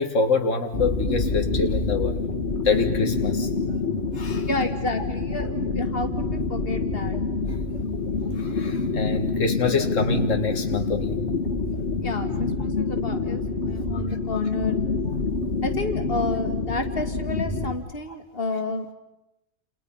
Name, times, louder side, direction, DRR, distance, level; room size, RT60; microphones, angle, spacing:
voice 1, 0.0-2.2 2.7-3.5 4.1-4.5 8.4-11.2 14.3-14.4, left 4 dB, 90° left, 5 dB, 1.9 m, -25 dB
sound 1, 0.7-17.7, left 3 dB, 65° left, 2.4 m, -27 dB
voice 2, 4.4-7.2 12.0-14.8 15.6-18.9, left 2 dB, 50° left, 6 dB, 2.4 m, -30 dB
29.5 x 29.0 x 5.6 m, 0.89 s
omnidirectional pair, 1.3 m